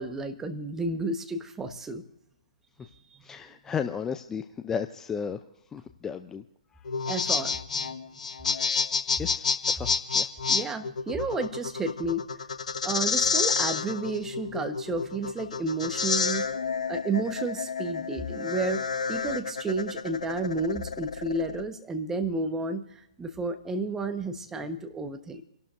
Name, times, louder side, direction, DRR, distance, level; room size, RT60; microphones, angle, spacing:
voice 1, 0.0-2.0 7.1-8.0 10.5-12.2 12.8-16.5 16.9-25.4, right 3 dB, 10° right, 7 dB, 1.2 m, -31 dB
voice 2, 3.2-5.4 5.7-6.4 6.7-6.9 8.5-8.7 9.2-10.3, left 6 dB, 10° left, 9 dB, 0.5 m, -34 dB
sound 1, 6.8-21.6, left 5 dB, 70° left, 1.2 m, -29 dB
29.5 x 12.0 x 2.6 m, 0.80 s
figure-of-eight pair, 130°, 4 cm